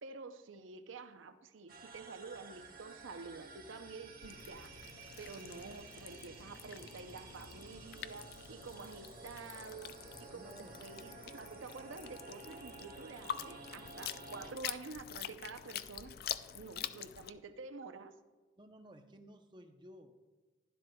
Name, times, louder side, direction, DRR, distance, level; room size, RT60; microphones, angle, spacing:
voice 1, 0.0-4.7 5.2-9.9 10.2-10.5 10.8-16.1 16.5-18.2, right 4 dB, 90° right, 10 dB, 0.6 m, -49 dB
sound 1, 1.7-14.5, right 3 dB, 50° right, 1.3 m, -53 dB
sound 2, 4.2-17.3, left 10 dB, 50° left, 0.3 m, -46 dB
voice 2, 10.3-10.9 16.5-16.6 18.6-20.2, right 1 dB, 25° right, 6 dB, 0.6 m, -56 dB
11.5 x 11.5 x 2.3 m, 1.3 s
head